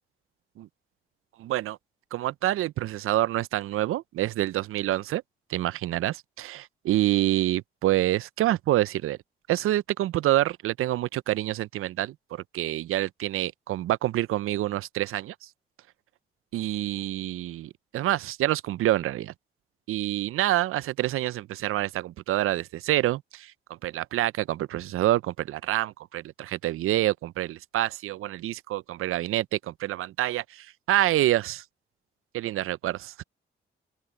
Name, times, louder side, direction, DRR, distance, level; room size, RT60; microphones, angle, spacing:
voice 1, 1.4-1.8 2.1-5.2 5.5-9.2 9.5-15.3 16.5-19.3 19.9-23.5 23.8-31.6 32.3-33.2, right 14 dB, 85° right, 0.4 m, -27 dB
open air
cardioid pair, 75°, 21 cm